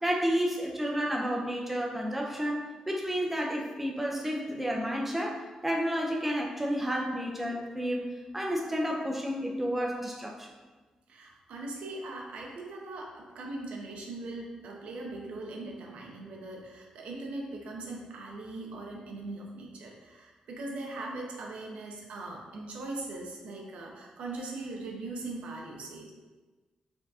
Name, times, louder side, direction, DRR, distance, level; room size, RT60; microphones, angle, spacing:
voice 1, 0.0-10.6, equal, 10° right, -1 dB, 0.6 m, -31 dB
voice 2, 11.1-26.1, right 2 dB, 80° right, -1 dB, 0.8 m, -40 dB
4.4 x 3.6 x 2.7 m, 1.3 s
cardioid pair, 120°, 2 cm